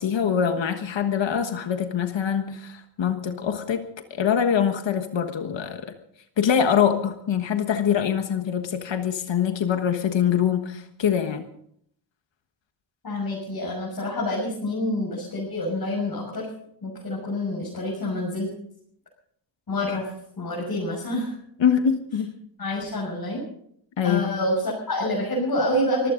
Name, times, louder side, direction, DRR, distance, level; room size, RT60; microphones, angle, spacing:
voice 1, 0.0-5.9 6.4-11.4 21.6-22.3 24.0-24.3, left 8 dB, 75° left, 7 dB, 1.5 m, -24 dB
voice 2, 13.0-16.4 16.8-18.5 19.7-21.4 22.6-23.4 24.0-26.1, left 1 dB, 50° left, -3 dB, 6.2 m, -27 dB
24.0 x 15.5 x 3.9 m, 0.69 s
wide cardioid pair, 145°, 45 cm